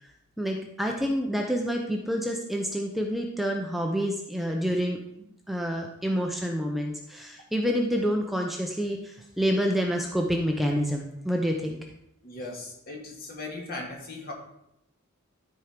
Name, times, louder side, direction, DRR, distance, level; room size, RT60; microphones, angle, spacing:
voice 1, 0.4-5.0 5.5-11.8, equal, ahead, 1 dB, 0.7 m, -28 dB
voice 2, 12.2-14.3, left 2 dB, 45° left, 0 dB, 2.1 m, -38 dB
12.5 x 4.6 x 5.1 m, 0.80 s
head